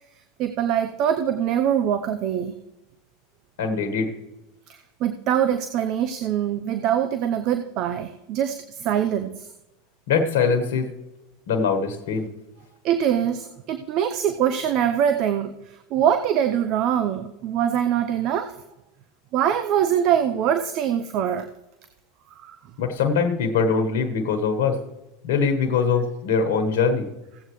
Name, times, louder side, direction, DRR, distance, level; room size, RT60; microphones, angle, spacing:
voice 1, 0.4-2.5 4.7-9.5 12.8-18.6 19.3-21.5 22.4-22.6, right 9 dB, 50° right, 9 dB, 0.7 m, -23 dB
voice 2, 3.6-4.1 10.1-10.9 11.5-12.3 22.8-24.8 25.2-27.1, left 5 dB, 75° left, 5 dB, 1.3 m, -22 dB
16.5 x 8.1 x 3.1 m, 0.94 s
hypercardioid pair, 105°, 0 cm